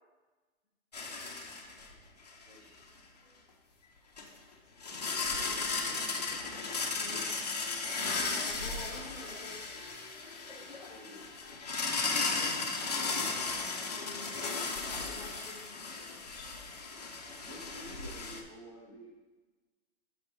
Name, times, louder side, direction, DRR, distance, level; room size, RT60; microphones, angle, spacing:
sound 1, 0.9-1.9 2.3-2.4 4.2-4.3 4.8-18.4, left 4 dB, 30° left, 0.5 m, -35 dB
voice 1, 2.5-2.8 5.8-6.0 10.8-11.2 17.2-19.1, right 1 dB, 25° right, -5 dB, 0.6 m, -51 dB
voice 2, 7.0-9.5 13.0-15.6, left 2 dB, ahead, -7 dB, 0.9 m, -49 dB
6.0 x 5.0 x 4.6 m, 1.2 s
hypercardioid pair, 175°, 42 cm